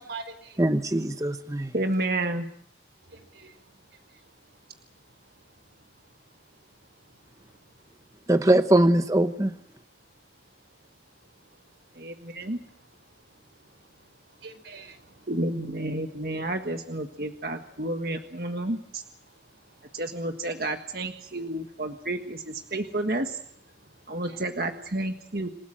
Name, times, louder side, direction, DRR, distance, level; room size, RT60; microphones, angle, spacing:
voice 1, 0.0-0.6 3.1-3.6 14.4-15.3 24.0-24.4, right 4 dB, 85° right, 4.6 m, -43 dB
voice 2, 0.6-1.7 8.3-9.5, right 1 dB, 20° right, 0.9 m, -21 dB
voice 3, 1.7-2.5 12.0-12.6 15.3-19.0 19.9-23.4 24.1-25.5, right 1 dB, 55° right, 1.6 m, -30 dB
28.0 x 18.0 x 7.6 m
head